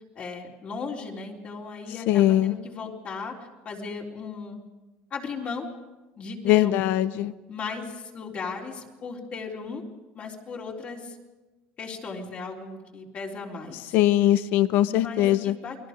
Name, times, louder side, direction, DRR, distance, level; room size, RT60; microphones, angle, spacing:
voice 1, 0.2-4.6 5.1-5.7 6.2-6.7 7.5-9.8 10.1-11.2 11.8-14.0 14.8-15.9, left 4 dB, 40° left, -2 dB, 3.9 m, -36 dB
voice 2, 2.1-2.5 6.4-7.3 13.9-15.5, left 13 dB, 65° left, 14 dB, 0.8 m, -21 dB
29.0 x 20.5 x 5.2 m, 1.2 s
cardioid pair, 125°, 4 cm